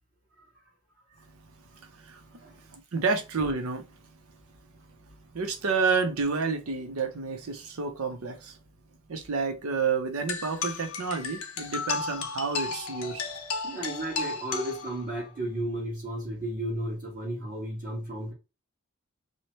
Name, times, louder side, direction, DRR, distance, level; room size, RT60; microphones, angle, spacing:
voice 1, 1.7-3.9 5.1-8.6 9.1-13.2, right 4 dB, 85° right, 0.7 m, -30 dB
sound 1, 10.3-15.3, left 5 dB, 75° left, 0.6 m, -34 dB
voice 2, 13.6-18.3, right 1 dB, 40° right, 1.2 m, -33 dB
2.8 x 2.1 x 3.0 m
head